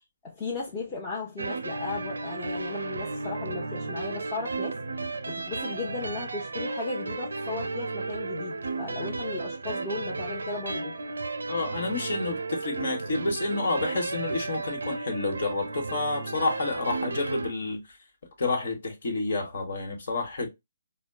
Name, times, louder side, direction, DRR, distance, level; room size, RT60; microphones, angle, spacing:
voice 1, 0.2-4.8 5.3-10.9, left 3 dB, 25° left, 0.8 m, -36 dB
sound 1, 1.4-17.5, right 3 dB, 80° right, 0.4 m, -33 dB
voice 2, 11.5-18.0 18.4-20.5, left 3 dB, 60° left, 1.2 m, -29 dB
4.1 x 2.2 x 2.3 m
hypercardioid pair, 150°, 0 cm